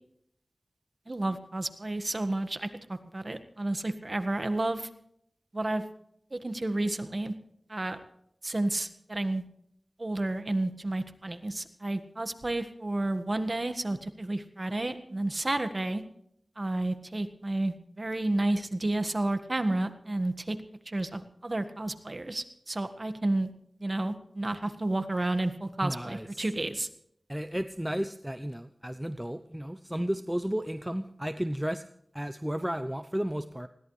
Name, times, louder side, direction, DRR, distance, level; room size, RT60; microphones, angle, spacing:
voice 1, 1.1-4.9 5.5-5.8 6.3-7.3 7.7-8.0 8.4-9.4 10.0-16.0 16.6-20.6 20.9-23.5 23.8-26.9, right 2 dB, 45° right, 9 dB, 1.6 m, -31 dB
voice 2, 25.8-26.4 27.3-31.8 32.1-33.7, equal, 10° right, 10 dB, 0.7 m, -33 dB
20.5 x 17.0 x 3.3 m, 0.71 s
wide cardioid pair, 45°, 0 cm